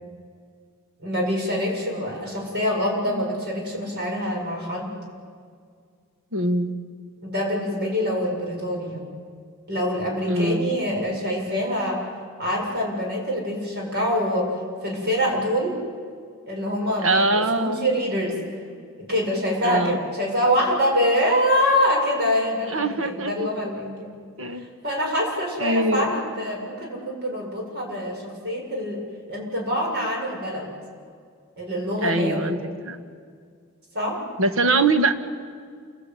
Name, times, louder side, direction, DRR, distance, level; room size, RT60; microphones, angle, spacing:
voice 1, 1.0-4.9 7.2-9.0 9.7-12.0 12.4-14.6 14.8-15.8 16.5-18.4 19.0-24.1 24.6-29.0 29.3-30.7 31.6-32.5 33.9-34.2, equal, 50° right, 0 dB, 7.5 m, -25 dB
voice 2, 6.3-6.7 10.3-10.7 17.0-17.9 19.6-20.0 22.7-23.5 24.4-24.6 25.6-26.2 32.0-33.0 34.4-35.1, right 2 dB, 70° right, 7 dB, 1.7 m, -23 dB
28.5 x 21.5 x 9.2 m, 2.1 s
head